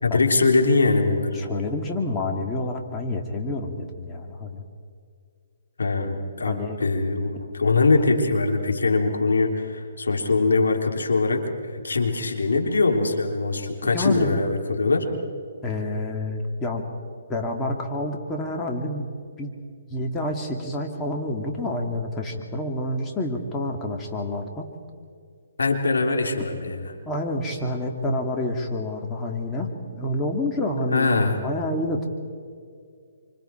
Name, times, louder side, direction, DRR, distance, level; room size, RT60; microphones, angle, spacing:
voice 1, 0.0-1.4 5.8-15.1 25.6-26.9 30.9-31.4, left 3 dB, 85° left, 3 dB, 3.5 m, -22 dB
voice 2, 1.3-4.6 6.4-6.8 13.9-14.5 15.6-16.9 17.3-19.1 19.4-19.5 19.9-24.7 27.1-32.1, left 1 dB, 15° left, 0 dB, 2.5 m, -28 dB
28.0 x 25.5 x 4.6 m, 2.2 s
hypercardioid pair, 145°, 0 cm